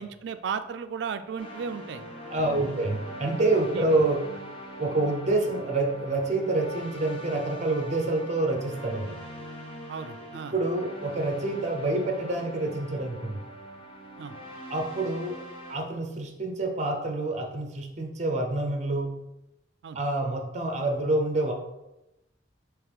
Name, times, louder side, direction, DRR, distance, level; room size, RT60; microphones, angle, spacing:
voice 1, 0.0-2.0 2.4-2.8 3.7-4.0 9.9-10.5 14.2-14.4 19.8-20.0, right 6 dB, 70° right, 10 dB, 0.3 m, -35 dB
sound 1, 1.4-15.8, equal, 30° left, 0.9 m, -42 dB
voice 2, 2.3-4.3 4.8-9.2 10.5-13.4 14.7-15.4 15.7-19.1 19.9-21.5, right 2 dB, 40° right, 3 dB, 0.7 m, -27 dB
3.6 x 3.0 x 4.8 m, 0.92 s
head